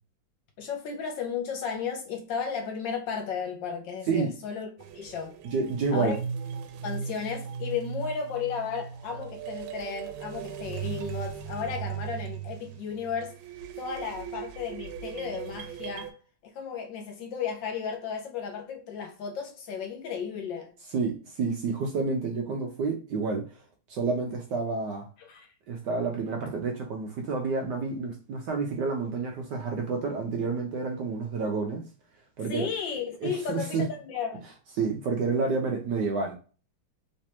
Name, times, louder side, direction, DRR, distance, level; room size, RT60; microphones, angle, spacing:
voice 1, 0.6-4.7 4.9-5.4 5.9-6.2 6.8-13.4 13.8-16.1 16.4-20.7 25.2-25.5 32.4-34.4, left 6 dB, 70° left, 1.3 m, -34 dB
sound 1, 4.8-16.1, right 7 dB, 85° right, 1.5 m, -38 dB
voice 2, 5.4-6.2 20.9-23.6 23.9-25.0 25.7-31.9 32.4-32.7 33.2-33.8 34.8-36.3, right 4 dB, 70° right, 1.0 m, -29 dB
3.3 x 3.2 x 2.8 m
omnidirectional pair, 2.3 m